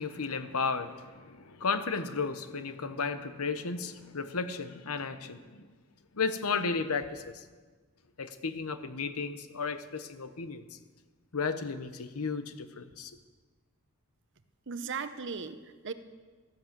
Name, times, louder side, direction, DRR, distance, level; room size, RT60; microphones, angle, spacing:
voice 1, 0.0-5.7 6.1-7.4 8.2-10.8 11.3-13.1, left 4 dB, 80° left, 0.9 m, -34 dB
voice 2, 14.7-15.9, right 5 dB, 55° right, 0.8 m, -37 dB
13.5 x 11.0 x 7.5 m
head